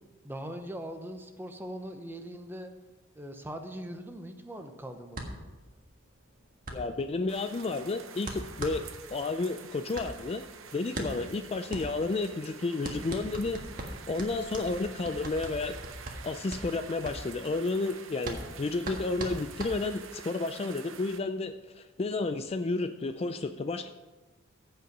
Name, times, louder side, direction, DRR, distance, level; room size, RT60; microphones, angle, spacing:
voice 1, 0.2-2.7 3.1-5.3, right 1 dB, 10° right, 6 dB, 0.8 m, -41 dB
sound 1, 5.1-20.2, right 1 dB, 40° right, 1.6 m, -41 dB
voice 2, 6.7-10.4 10.7-13.6 14.1-15.8 16.2-23.9, left 3 dB, 30° left, 9 dB, 0.4 m, -31 dB
sound 2, 7.3-21.2, right 6 dB, 65° right, 0.9 m, -48 dB
15.0 x 5.6 x 5.4 m, 1.2 s
head